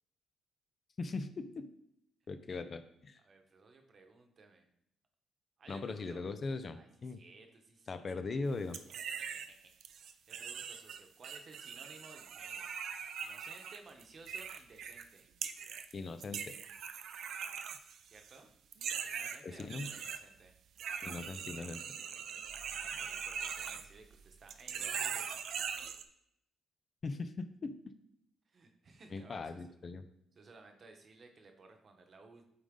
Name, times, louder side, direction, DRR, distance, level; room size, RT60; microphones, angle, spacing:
voice 1, 1.0-1.7 2.3-3.2 5.7-7.2 7.9-8.8 15.9-16.6 19.4-19.9 21.0-21.8 27.0-27.7 29.1-30.0, left 3 dB, 40° left, 10 dB, 0.5 m, -40 dB
voice 2, 3.2-4.7 5.6-6.3 6.7-8.2 9.2-12.7 13.2-15.2 18.0-18.5 19.0-20.5 22.7-25.3 28.5-29.7 30.3-32.5, right 3 dB, 45° right, 4 dB, 1.0 m, -58 dB
sound 1, 8.7-9.5 9.8-15.1 15.4-15.9 16.2-18.4 18.7-20.2 20.8-24.2 24.5-26.0, right 7 dB, 70° right, 0.4 m, -41 dB
8.5 x 3.8 x 3.7 m, 0.76 s
cardioid pair, 90°, 0 cm